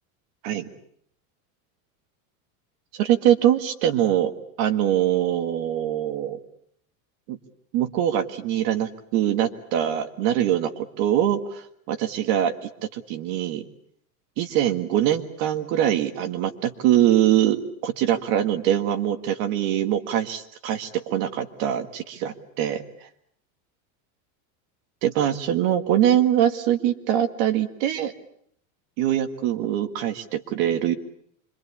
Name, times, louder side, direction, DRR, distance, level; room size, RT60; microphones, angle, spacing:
voice 1, 2.9-4.3 4.6-6.4 7.3-7.4 7.7-13.7 14.4-23.1 25.0-28.1 29.0-30.9, right 11 dB, 45° right, 8 dB, 1.7 m, -23 dB
26.5 x 23.5 x 8.5 m, 0.68 s
supercardioid pair, 175°, 43 cm